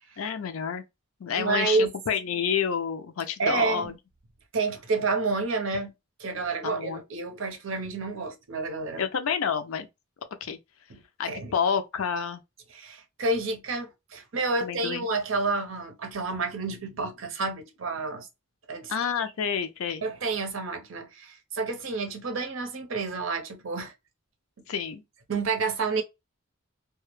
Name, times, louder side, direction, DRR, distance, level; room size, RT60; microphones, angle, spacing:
voice 1, 0.2-0.8 1.2-3.9 6.6-7.0 9.0-9.9 10.4-10.6 11.2-12.4 14.6-15.1 18.9-20.0 24.7-25.0, left 7 dB, 80° left, 0.4 m, -29 dB
voice 2, 1.3-1.9 3.4-3.9 4.5-5.9 6.2-9.0 10.9-11.0 11.3-11.5 12.7-18.3 18.7-18.9 20.0-23.9 25.3-26.0, right 3 dB, 70° right, 0.6 m, -29 dB
2.2 x 2.0 x 3.0 m
head